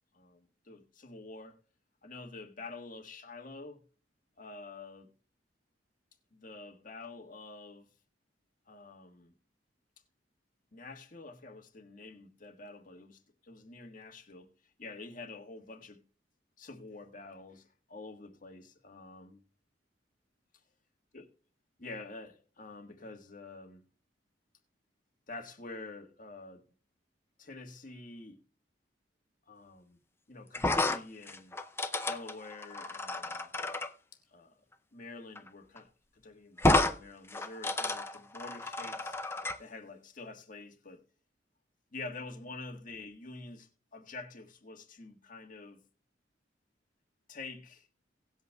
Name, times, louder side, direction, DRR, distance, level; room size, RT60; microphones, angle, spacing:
voice 1, 0.1-1.6 2.0-3.8 4.4-5.1 6.3-7.9 8.7-9.3 10.7-14.5 14.8-16.0 16.6-19.4 21.1-21.3 21.8-23.8 25.3-26.6 27.4-28.4 29.5-30.0 30.3-31.5 32.1-33.5 34.3-34.5 34.9-39.2 39.6-41.0 41.9-45.8 47.3-47.9, left 3 dB, 50° left, 1.5 m, -47 dB
sound 1, 30.5-33.9 35.3-35.5 35.8-35.9 36.6-36.9 37.3-39.6, left 2 dB, 15° left, 0.6 m, -31 dB
18.5 x 8.1 x 2.3 m
head